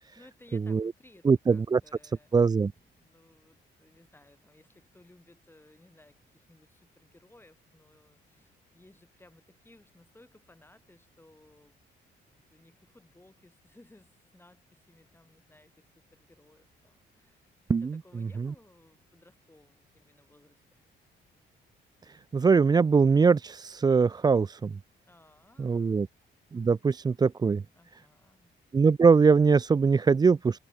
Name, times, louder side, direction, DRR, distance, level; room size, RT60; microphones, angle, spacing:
voice 1, 0.1-11.8 12.5-17.5 17.8-20.8 25.0-26.1 27.7-28.5, left 1 dB, 10° left, 6.8 m, -59 dB
voice 2, 1.3-1.8 2.3-2.7 17.7-18.0 18.4-18.5 22.3-24.7 25.6-26.1 26.5-27.6 28.7-30.6, right 5 dB, 20° right, 0.4 m, -22 dB
cardioid pair, 90°, 20 cm